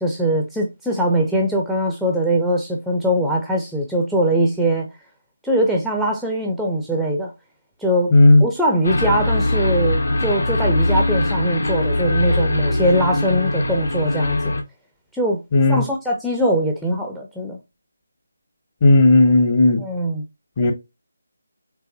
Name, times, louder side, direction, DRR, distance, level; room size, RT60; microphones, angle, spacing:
voice 1, 0.0-4.9 5.4-7.3 7.8-8.1 8.4-14.5 15.1-15.4 15.7-17.6 19.8-20.2, right 1 dB, ahead, 0.4 m, -21 dB
voice 2, 8.1-8.4 15.5-15.9 18.8-19.9 20.6-20.7, left 2 dB, 25° left, 0.8 m, -13 dB
sound 1, 8.8-14.6, left 2 dB, 60° left, 0.8 m, -21 dB
4.6 x 3.1 x 2.6 m
figure-of-eight pair, 155°, 0 cm